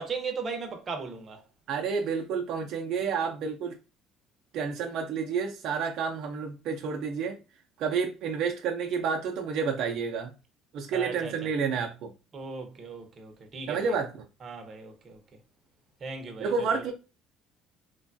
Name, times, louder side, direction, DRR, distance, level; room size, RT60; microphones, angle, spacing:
voice 1, 0.0-1.4 10.9-11.5 12.3-13.9 14.4-15.2 16.0-16.9, right 5 dB, 35° right, 0.8 m, -37 dB
voice 2, 1.7-3.8 4.5-7.4 7.8-10.3 10.7-12.1 13.7-14.1 16.4-16.9, right 5 dB, 65° right, 0.5 m, -30 dB
3.1 x 2.2 x 2.6 m
cardioid pair, 115°, 0 cm